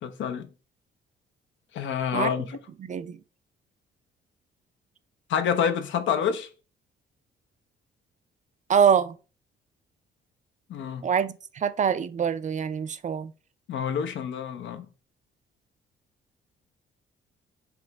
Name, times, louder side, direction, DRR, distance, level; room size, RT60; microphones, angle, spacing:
voice 1, 0.0-0.5 1.7-2.6 5.3-6.5 10.7-11.1 13.7-14.9, left 7 dB, 70° left, 0.7 m, -27 dB
voice 2, 2.8-3.2 8.7-9.2 11.0-13.3, right 7 dB, 40° right, 0.4 m, -24 dB
4.8 x 2.9 x 3.4 m
cardioid pair, 90°, 20 cm